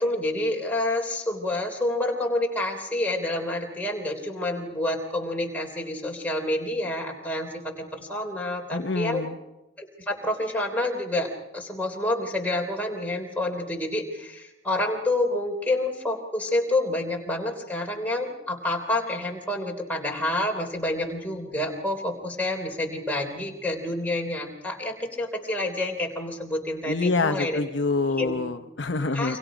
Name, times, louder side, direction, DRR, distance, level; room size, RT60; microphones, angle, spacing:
voice 1, 0.0-9.2 9.8-27.6 28.1-28.4 29.1-29.4, left 1 dB, 10° left, 0 dB, 3.3 m, -28 dB
voice 2, 8.7-9.3 26.9-29.4, left 3 dB, 65° left, 7 dB, 0.8 m, -26 dB
29.0 x 25.0 x 5.1 m, 1.0 s
head